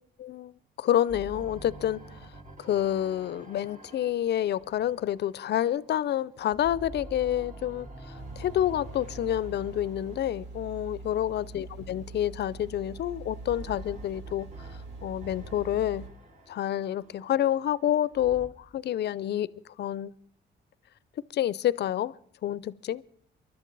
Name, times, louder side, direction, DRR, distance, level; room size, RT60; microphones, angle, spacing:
voice 1, 0.2-0.5 0.8-2.0 2.6-7.9 8.4-14.5 15.0-16.1 16.5-19.5 19.8-20.1 21.3-22.1 22.4-23.0, left 11 dB, 60° left, 0.5 m, -28 dB
sound 1, 1.1-6.1 6.4-11.7 12.5-18.5, right 1 dB, 40° right, 1.9 m, -48 dB
sound 2, 8.1-16.1, right 3 dB, 65° right, 3.0 m, -44 dB
23.5 x 12.0 x 4.0 m
cardioid pair, 90°, 20 cm